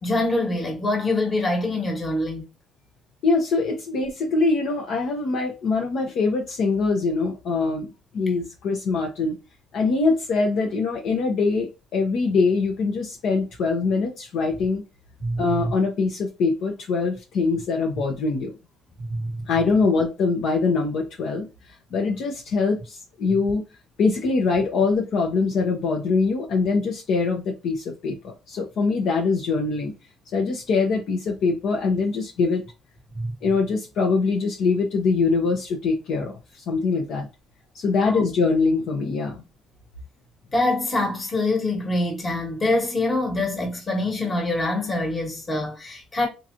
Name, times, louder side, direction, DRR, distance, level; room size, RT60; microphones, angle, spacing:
voice 1, 0.0-2.5 15.2-15.7 19.0-19.4 33.1-33.3 38.0-38.2 40.5-46.3, left 2 dB, 25° left, 1.4 m, -25 dB
voice 2, 3.2-9.4 9.7-14.8 15.4-18.5 19.5-21.5 21.9-23.6 24.0-29.9 30.3-32.6 33.4-37.3 37.7-39.4, left 4 dB, 65° left, 0.8 m, -23 dB
3.9 x 3.0 x 2.5 m
cardioid pair, 110°, 0 cm